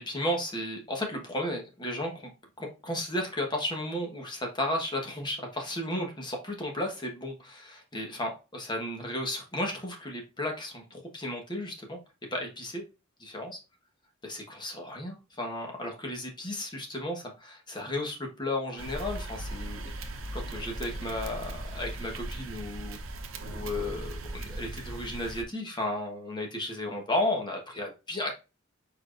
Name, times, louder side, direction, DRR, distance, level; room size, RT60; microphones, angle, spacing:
voice 1, 0.0-2.3 2.6-12.0 12.3-12.8 13.2-13.6 14.2-23.0 23.4-28.3, left 1 dB, 20° left, 2 dB, 1.2 m, -34 dB
sound 1, 18.8-25.4, right 1 dB, 75° right, 0.8 m, -38 dB
4.7 x 4.5 x 2.5 m, 0.28 s
head